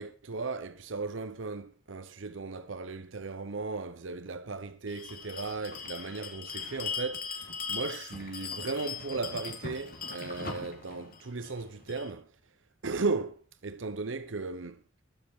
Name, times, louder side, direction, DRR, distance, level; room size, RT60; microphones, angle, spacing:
voice 1, 0.0-12.3 12.8-14.8, right 3 dB, 80° right, 0.8 m, -36 dB
Bell, 4.9-12.1, left 5 dB, 50° left, 2.9 m, -40 dB
21.0 x 7.8 x 4.8 m
head